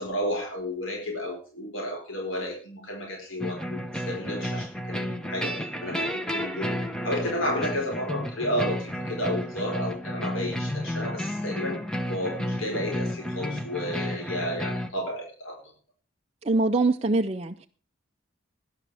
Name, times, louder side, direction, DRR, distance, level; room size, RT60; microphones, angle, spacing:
voice 1, 0.0-6.7 7.0-11.8 12.1-15.6, equal, 80° left, 1 dB, 4.5 m, -32 dB
sound 1, 3.4-14.9, equal, 5° left, 1.0 m, -32 dB
voice 2, 16.5-17.7, right 3 dB, 30° right, 3 dB, 0.5 m, -23 dB
18.0 x 11.5 x 3.5 m, 0.39 s
head